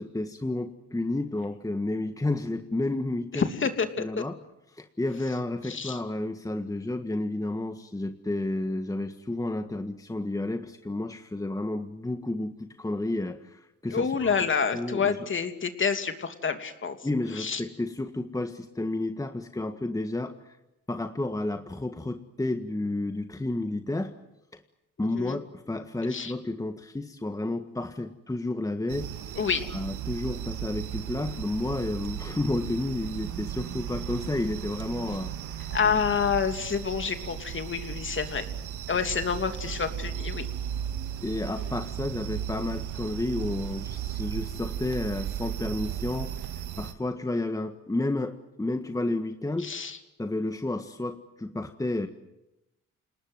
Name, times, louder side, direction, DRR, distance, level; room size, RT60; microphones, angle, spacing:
voice 1, 0.0-3.5 4.0-4.4 4.7-14.4 14.7-15.3 17.0-20.6 20.9-24.1 24.5-24.6 25.0-29.1 29.7-35.6 41.2-49.7 50.2-52.1, left 2 dB, 10° left, 7 dB, 1.6 m, -31 dB
voice 2, 3.3-3.9 4.2-4.3 5.7-6.0 13.9-17.0 17.4-17.6 25.1-25.4 26.1-26.3 29.4-29.6 35.7-38.5 38.9-40.5 49.6-50.0, left 6 dB, 40° left, 7 dB, 2.9 m, -28 dB
sound 1, 28.9-46.9, right 10 dB, 80° right, 2.0 m, -35 dB
28.5 x 19.0 x 9.6 m, 0.90 s
cardioid pair, 90°, 30 cm